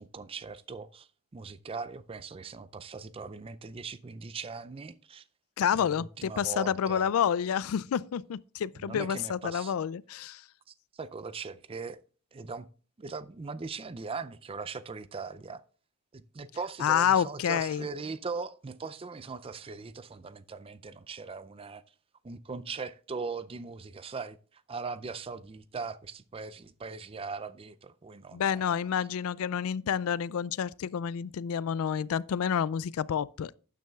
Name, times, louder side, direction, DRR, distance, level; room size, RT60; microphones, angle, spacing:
voice 1, 0.0-5.2 5.8-7.1 8.8-9.8 10.7-12.0 12.3-12.7 13.0-15.6 16.1-21.8 22.2-28.6, right 4 dB, 25° right, 0.4 m, -40 dB
voice 2, 5.6-10.5 16.8-17.9 28.3-33.6, left 8 dB, 70° left, 0.3 m, -29 dB
12.0 x 9.3 x 2.3 m
head